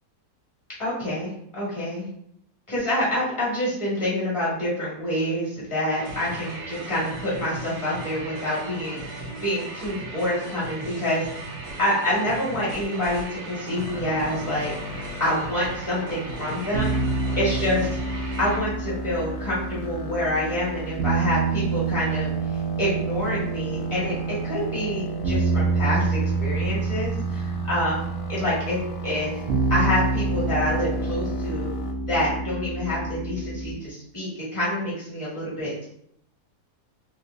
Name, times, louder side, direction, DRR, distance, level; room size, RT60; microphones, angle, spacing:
voice 1, 0.8-2.1 2.7-11.3 11.8-14.7 15.2-17.0 17.4-17.9 18.4-22.3 22.8-29.3 29.7-31.7 32.0-35.9, left 1 dB, 20° left, -8 dB, 1.4 m, -27 dB
sound 1, 5.9-18.6, right 2 dB, 85° right, 1.5 m, -37 dB
sound 2, 13.8-31.9, left 2 dB, 85° left, 1.1 m, -39 dB
sound 3, 16.7-33.7, right 3 dB, 65° right, 0.6 m, -27 dB
3.3 x 3.1 x 2.5 m, 0.71 s
omnidirectional pair, 1.7 m